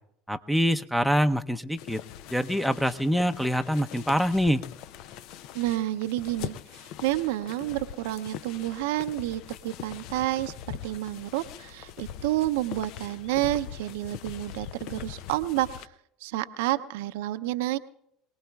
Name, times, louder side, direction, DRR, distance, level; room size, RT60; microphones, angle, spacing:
voice 1, 0.3-2.0 2.3-4.6, equal, ahead, 10 dB, 0.7 m, -25 dB
sound 1, 1.8-15.9, left 10 dB, 65° left, 0.5 m, -42 dB
voice 2, 5.5-15.9 16.2-17.8, right 15 dB, 75° right, 10 dB, 0.6 m, -30 dB
25.5 x 19.0 x 2.3 m, 0.75 s
hypercardioid pair, 75°, 0 cm